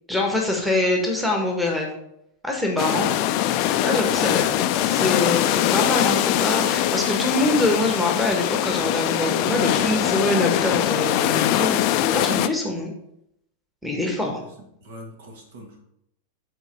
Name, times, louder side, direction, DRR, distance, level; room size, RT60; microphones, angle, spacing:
voice 1, 0.1-2.0 2.4-3.1 3.8-4.5 4.8-12.9 13.8-14.4, left 2 dB, ahead, 0 dB, 1.5 m, -24 dB
sound 1, 2.8-12.5, left 12 dB, 45° left, 0.4 m, -22 dB
voice 2, 2.9-3.2 3.9-4.6 14.6-15.8, right 1 dB, 55° right, 2 dB, 1.9 m, -41 dB
7.9 x 4.4 x 4.6 m, 0.77 s
figure-of-eight pair, 90°, 0 cm